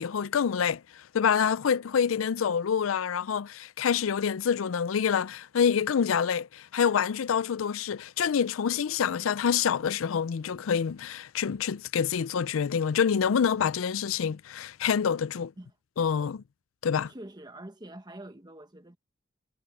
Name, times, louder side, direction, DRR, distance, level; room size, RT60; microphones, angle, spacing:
voice 1, 0.0-15.5 16.0-16.4 16.8-17.1, left 7 dB, 90° left, 0.4 m, -27 dB
voice 2, 17.1-19.0, right 1 dB, 20° right, 1.3 m, -45 dB
head